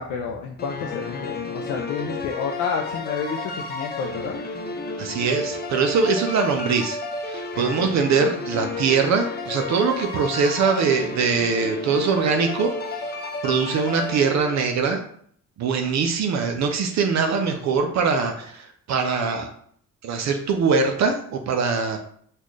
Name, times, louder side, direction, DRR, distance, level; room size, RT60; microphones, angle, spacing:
voice 1, 0.0-4.4, left 5 dB, 80° left, 1 dB, 0.5 m, -30 dB
sound 1, 0.6-14.9, left 3 dB, 35° left, 0.5 m, -32 dB
voice 2, 5.0-7.0 7.3-13.0 13.4-15.0 15.6-19.5 20.0-22.0, right 5 dB, 65° right, 4 dB, 0.5 m, -22 dB
4.1 x 2.3 x 3.1 m, 0.62 s
cardioid pair, 90°, 30 cm